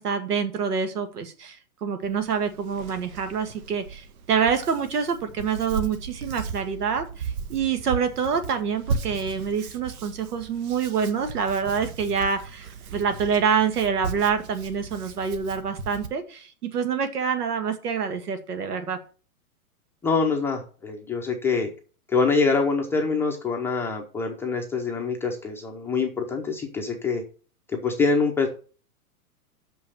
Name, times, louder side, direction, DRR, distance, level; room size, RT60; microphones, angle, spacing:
voice 1, 0.0-19.0, right 6 dB, 85° right, 8 dB, 2.0 m, -26 dB
Hands, 2.0-16.1, right 5 dB, 70° right, 1.4 m, -36 dB
voice 2, 20.0-21.7 22.1-27.2 27.7-28.5, left 4 dB, 5° left, 0 dB, 0.6 m, -25 dB
6.5 x 5.5 x 6.4 m, 0.37 s
hypercardioid pair, 145°, 45 cm